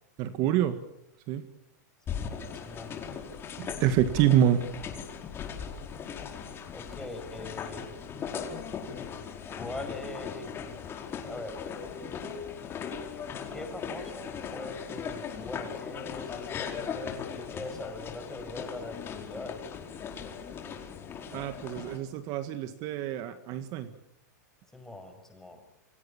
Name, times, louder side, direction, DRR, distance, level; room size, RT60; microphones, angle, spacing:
voice 1, 0.2-0.8 1.3-1.5 3.6-4.6 21.3-23.9, right 11 dB, 40° right, 10 dB, 1.8 m, -26 dB
sound 1, 2.1-22.0, left 7 dB, 25° left, 4.8 m, -38 dB
voice 2, 2.1-3.0 6.7-7.9 9.4-10.8 11.3-11.7 13.5-19.6 24.7-25.6, left 2 dB, 5° left, 5 dB, 6.7 m, -42 dB
29.5 x 25.5 x 7.4 m, 0.80 s
hypercardioid pair, 135°, 10 cm